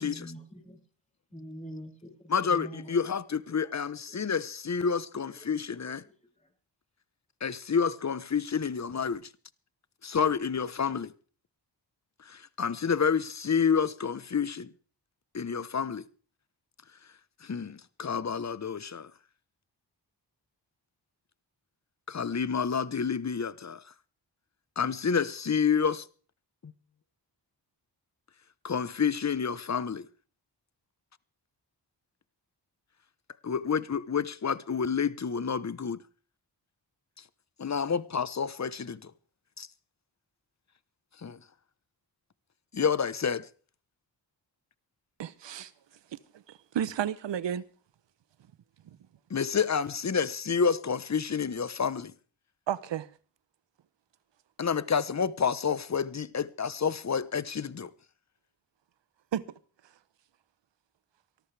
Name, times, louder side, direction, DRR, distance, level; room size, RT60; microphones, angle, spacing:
voice 1, 0.0-0.8 1.3-3.2 3.5-3.7 4.1-4.4 4.8-4.9 5.3-6.5, equal, 15° left, 6.1 m, -46 dB
voice 2, 2.3-6.0 7.4-9.3 10.0-11.1 12.2-14.7 15.3-16.0 17.4-19.1 22.1-23.8 24.8-26.1 26.6-26.7 28.6-30.1 33.4-36.0 37.6-39.1 39.6-39.7 41.2-41.4 42.7-43.5 49.3-52.1 54.6-57.9, left 6 dB, 40° left, 1.1 m, -29 dB
voice 3, 45.2-45.7 46.1-47.6 48.8-49.0 52.7-53.1 59.3-59.5, right 10 dB, 75° right, 0.9 m, -33 dB
23.5 x 14.0 x 3.4 m
cardioid pair, 40°, 44 cm